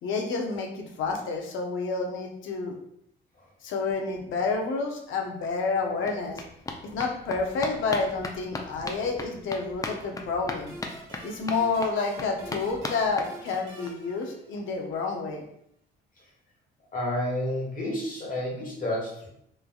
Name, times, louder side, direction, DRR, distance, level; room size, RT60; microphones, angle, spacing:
voice 1, 0.0-2.8 3.6-6.4 6.8-10.8 11.2-15.4, left 4 dB, 80° left, 2 dB, 0.6 m, -29 dB
sound 1, 5.1-5.2 5.4-13.9 14.2-14.3 14.6-14.7 14.9-15.0, left 3 dB, 15° left, 0.3 m, -39 dB
sound 2, 10.7-15.0, right 2 dB, 80° right, 1.1 m, -47 dB
voice 2, 16.9-19.3, left 1 dB, 45° left, -3 dB, 1.1 m, -30 dB
3.2 x 2.2 x 2.3 m, 0.71 s
cardioid pair, 90°, 20 cm